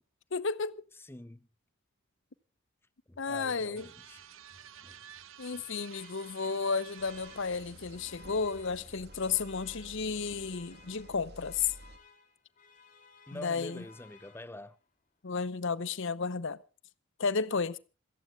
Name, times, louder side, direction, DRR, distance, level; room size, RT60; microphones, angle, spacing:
voice 1, 0.3-0.8 3.2-3.9 5.4-11.7 13.3-13.8 15.2-16.6 17.2-17.8, left 5 dB, 60° left, 0.8 m, -32 dB
voice 2, 1.0-1.5 3.1-4.2 4.8-5.0 5.5-5.7 13.3-14.8, left 1 dB, 10° left, 0.6 m, -46 dB
sound 1, 3.8-8.5, right 9 dB, 65° right, 1.0 m, -52 dB
sound 2, 5.8-14.9, left 6 dB, 35° left, 2.3 m, -58 dB
sound 3, 7.0-12.0, right 1 dB, 50° right, 2.4 m, -52 dB
27.0 x 17.0 x 2.4 m
head